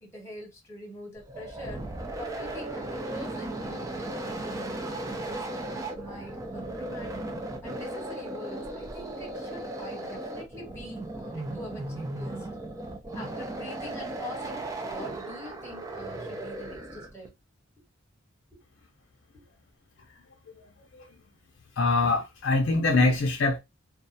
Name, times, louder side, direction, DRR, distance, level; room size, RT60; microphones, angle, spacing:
voice 1, 0.0-1.8 2.2-4.8 5.2-7.1 7.6-12.5 13.1-17.3 18.5-18.6 19.3-19.4, equal, 10° left, 1.1 m, -44 dB
sound 1, 1.2-17.3, right 1 dB, 15° right, 0.3 m, -36 dB
voice 2, 21.8-23.6, left 3 dB, 60° left, 0.5 m, -23 dB
2.3 x 2.1 x 2.6 m
head